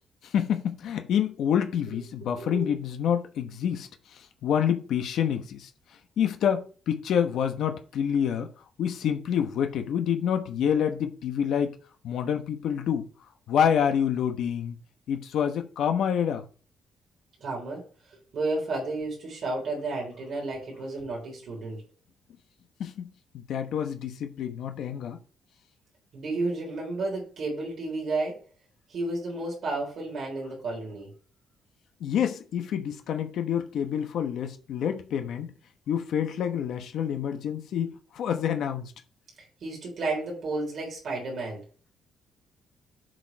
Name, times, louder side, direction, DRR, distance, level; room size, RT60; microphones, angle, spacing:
voice 1, 0.2-5.7 6.2-8.5 8.8-11.7 12.0-13.1 13.5-14.8 15.1-16.4 22.8-25.2 32.0-35.5 35.9-38.9, left 8 dB, 65° left, 1.1 m, -27 dB
voice 2, 2.3-2.7 17.4-17.8 18.3-21.8 26.1-28.4 28.9-31.1 39.6-41.6, right 2 dB, 50° right, 3.6 m, -32 dB
7.7 x 5.1 x 4.6 m
cardioid pair, 170°, 0 cm